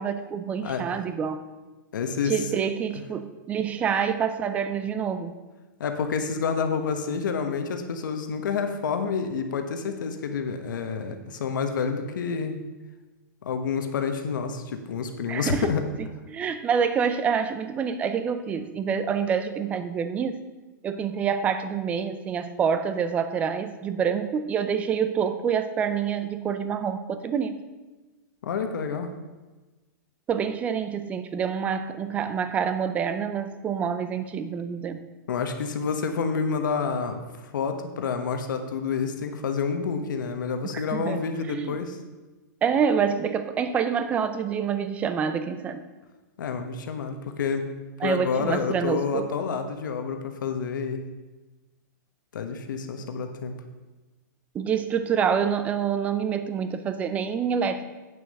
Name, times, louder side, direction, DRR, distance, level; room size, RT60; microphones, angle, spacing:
voice 1, 0.0-1.4 2.2-5.4 15.3-15.7 16.3-20.4 20.8-27.6 30.3-35.0 40.7-41.2 41.5-41.8 42.6-45.8 48.0-49.3 54.5-57.8, right 7 dB, 15° right, 10 dB, 0.5 m, -27 dB
voice 2, 0.6-1.0 1.9-2.3 5.8-12.6 13.4-15.8 28.4-29.2 35.3-37.2 37.5-42.0 46.4-47.7 48.0-51.0 52.3-53.5, left 5 dB, 75° left, 6 dB, 1.2 m, -28 dB
8.9 x 6.6 x 6.5 m, 1.2 s
hypercardioid pair, 165°, 10 cm